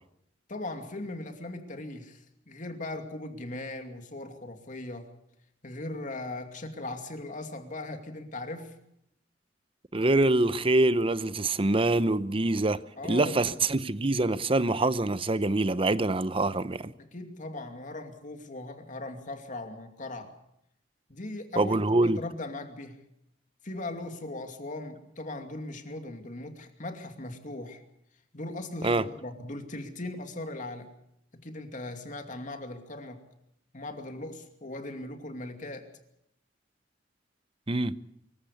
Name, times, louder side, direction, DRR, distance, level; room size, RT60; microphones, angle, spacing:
voice 1, 0.5-5.1 5.6-8.7 13.0-13.4 17.0-20.3 21.1-23.0 23.6-27.8 28.3-30.9 31.4-33.2 33.7-35.9, left 2 dB, 45° left, 2.6 m, -39 dB
voice 2, 9.9-16.9 21.6-22.2 28.8-29.0 37.7-38.0, right 2 dB, 30° right, 0.8 m, -25 dB
24.5 x 15.0 x 8.3 m
head